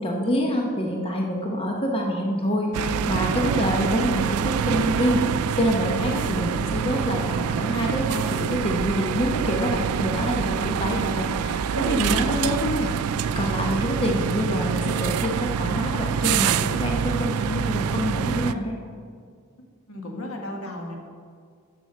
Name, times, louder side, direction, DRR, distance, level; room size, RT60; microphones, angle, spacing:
voice 1, 0.0-18.8, equal, 25° left, 0 dB, 0.9 m, -26 dB
sound 1, 2.7-18.5, right 7 dB, 90° right, 0.3 m, -26 dB
voice 2, 19.9-21.0, left 1 dB, 80° left, 1 dB, 1.5 m, -34 dB
7.7 x 6.3 x 6.5 m, 2.1 s
head